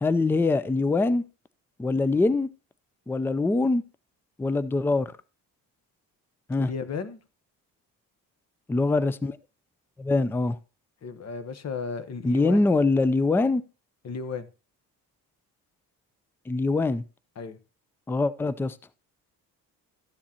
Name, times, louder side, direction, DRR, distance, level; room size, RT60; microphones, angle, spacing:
voice 1, 0.0-1.2 1.8-2.5 3.1-3.8 4.4-5.1 6.5-6.7 8.7-9.4 10.0-10.6 12.2-13.6 16.5-17.0 18.1-18.7, left 3 dB, 5° left, 0.4 m, -23 dB
voice 2, 6.6-7.2 11.0-12.7 14.0-14.5 17.4-17.6, left 5 dB, 40° left, 1.0 m, -34 dB
13.0 x 7.2 x 2.8 m
supercardioid pair, 70°, 38 cm